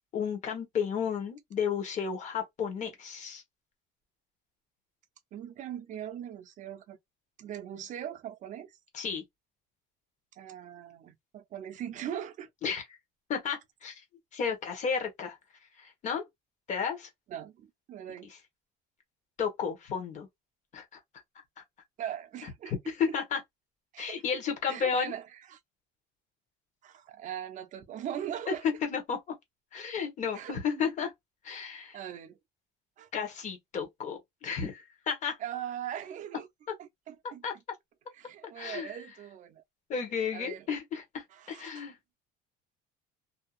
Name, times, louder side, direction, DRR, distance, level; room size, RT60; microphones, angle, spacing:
voice 1, 0.1-3.4 8.9-9.2 12.6-12.9 13.3-14.0 14.3-15.4 15.8-16.2 16.7-17.1 19.4-20.3 20.7-20.9 21.6-21.7 22.4-23.4 24.0-25.1 28.5-29.3 29.7-31.1 31.4-32.0 33.1-35.4 37.4-37.5 38.6-39.0 39.9-42.0, left 6 dB, 35° left, 1.0 m, -33 dB
voice 2, 5.3-7.0 7.4-8.8 10.3-12.5 17.3-18.3 22.0-22.7 23.1-23.2 23.9-24.2 24.7-25.6 26.8-28.6 30.3-30.9 31.9-32.4 33.0-33.1 35.4-36.5 36.8-37.4 38.1-39.6 40.3-40.7 41.3-41.8, right 10 dB, 40° right, 0.5 m, -40 dB
2.6 x 2.3 x 2.4 m
cardioid pair, 160°, 21 cm